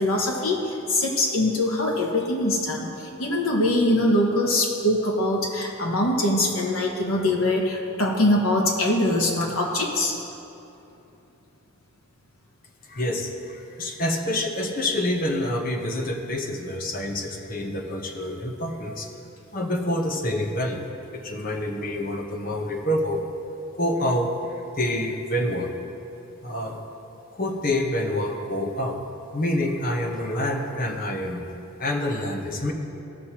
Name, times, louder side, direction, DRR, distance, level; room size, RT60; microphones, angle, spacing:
voice 1, 0.0-10.2, left 1 dB, 80° left, -1 dB, 1.5 m, -23 dB
voice 2, 12.9-19.1 19.5-20.8 21.1-23.2 23.8-24.3 24.8-25.7 26.4-26.8 27.3-29.0 29.3-31.5 31.8-32.7, left 1 dB, 45° left, 2 dB, 1.0 m, -27 dB
17.0 x 6.3 x 3.0 m, 2.9 s
head